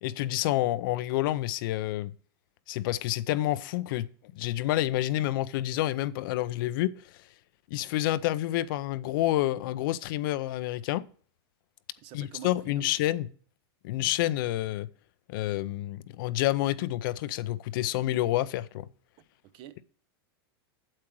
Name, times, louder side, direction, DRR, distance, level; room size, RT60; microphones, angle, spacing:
voice 1, 0.0-2.1 2.7-4.1 4.3-6.9 7.7-11.0 12.1-13.3 13.8-14.9 15.3-18.9, left 15 dB, 60° left, 0.6 m, -28 dB
voice 2, 12.0-12.5 19.5-19.8, right 11 dB, 40° right, 0.7 m, -45 dB
8.8 x 7.5 x 4.6 m
supercardioid pair, 135°, 13 cm